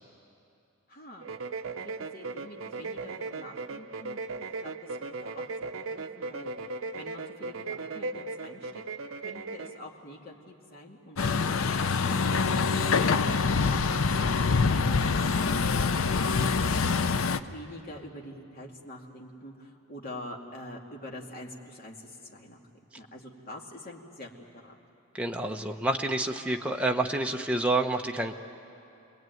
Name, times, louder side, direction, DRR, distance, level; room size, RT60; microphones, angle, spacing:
voice 1, 0.9-1.3 1.8-4.2 4.6-6.5 6.9-8.8 9.2-11.2 17.3-22.6 23.0-24.3 24.6-24.8, left 1 dB, 45° left, -1 dB, 2.5 m, -45 dB
sound 1, 1.2-9.8, right 3 dB, 75° right, 0.7 m, -37 dB
Truck, 11.2-17.4, left 4 dB, 75° left, 0.7 m, -25 dB
voice 2, 25.1-28.3, right 2 dB, 5° right, 2 dB, 1.0 m, -28 dB
28.5 x 21.0 x 9.4 m, 2.7 s
head